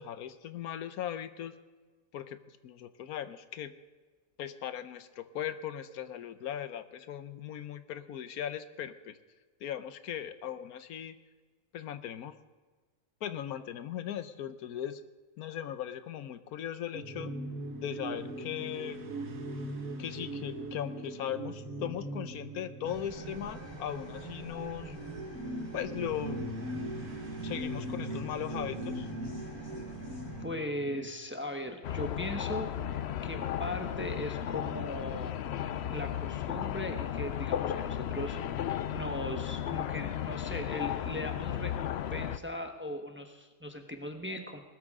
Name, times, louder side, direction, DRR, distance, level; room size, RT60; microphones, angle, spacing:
voice 1, 0.0-1.5 2.1-2.4 2.6-3.7 4.4-9.2 9.6-11.2 11.7-12.3 13.2-15.0 15.4-17.3 17.8-19.0 20.0-25.0 25.7-26.4 27.4-29.1, left 10 dB, 80° left, 12 dB, 1.2 m, -38 dB
sound 1, 16.9-31.1, right 1 dB, 65° right, 1.9 m, -40 dB
sound 2, 22.8-30.4, right 2 dB, 15° left, 3.7 m, -46 dB
voice 2, 30.4-35.4 35.9-38.4 38.9-44.6, left 1 dB, 10° right, 5 dB, 0.9 m, -39 dB
sound 3, 31.8-42.4, left 10 dB, 65° left, 0.7 m, -34 dB
19.5 x 13.5 x 3.7 m, 1.4 s
omnidirectional pair, 1.6 m